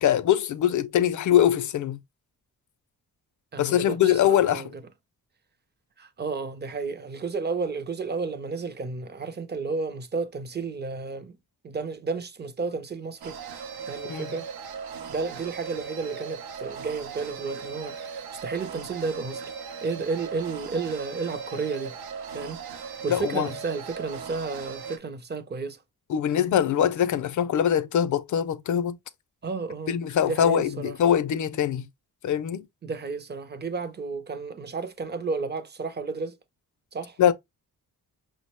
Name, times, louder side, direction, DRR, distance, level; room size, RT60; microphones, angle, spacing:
voice 1, 0.0-2.0 3.6-4.6 14.1-14.3 23.1-23.5 26.1-29.0 29.9-31.9 32.2-32.7 37.2-37.3, left 10 dB, 55° left, 0.4 m, -23 dB
voice 2, 3.5-4.7 6.0-11.3 11.6-13.4 13.9-14.5 15.1-19.5 19.8-21.9 22.3-22.6 22.9-25.8 29.4-30.0 30.2-31.0 32.8-36.4 36.9-37.2, right 4 dB, 30° right, 0.5 m, -32 dB
sound 1, 13.2-25.0, right 6 dB, 80° right, 0.7 m, -38 dB
5.8 x 2.1 x 2.9 m
wide cardioid pair, 140°, 37 cm